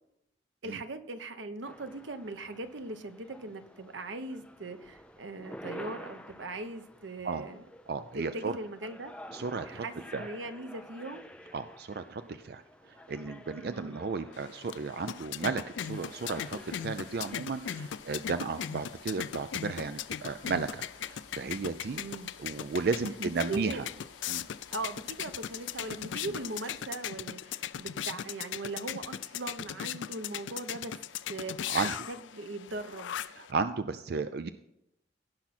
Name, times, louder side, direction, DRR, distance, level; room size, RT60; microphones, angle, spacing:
voice 1, 0.6-7.6 8.1-9.1 9.6-11.2 13.7-14.0 21.9-22.3 23.2-23.8 24.7-31.0 31.3-33.1, right 2 dB, 90° right, 9 dB, 0.9 m, -40 dB
sound 1, 1.6-17.9, equal, 5° left, 0.5 m, -50 dB
voice 2, 7.9-8.6 9.3-9.8 10.1-10.3 11.5-22.0 22.4-23.9 24.3-24.4 31.7-31.9 33.4-34.5, right 4 dB, 55° right, 10 dB, 0.4 m, -34 dB
sound 2, 14.3-33.5, left 9 dB, 80° left, 0.4 m, -39 dB
sound 3, 15.8-26.9, left 4 dB, 35° left, 4.1 m, -56 dB
16.5 x 5.8 x 4.2 m, 0.83 s
head